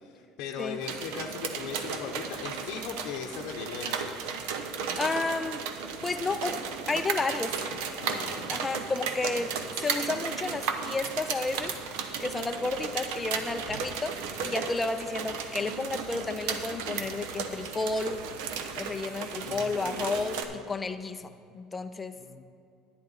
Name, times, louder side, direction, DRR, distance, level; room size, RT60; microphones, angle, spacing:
voice 1, 0.0-4.1 8.0-8.6 19.4-20.6 21.2-21.3 22.2-22.4, left 7 dB, 60° left, 1 dB, 0.7 m, -39 dB
sound 1, 0.8-20.4, right 6 dB, 80° right, 0.8 m, -35 dB
voice 2, 5.0-5.7 6.0-7.6 8.5-18.2 18.8-20.4 20.7-22.2, left 3 dB, 10° left, 7 dB, 0.4 m, -32 dB
10.5 x 10.0 x 4.0 m, 2.6 s
cardioid pair, 165°, 0 cm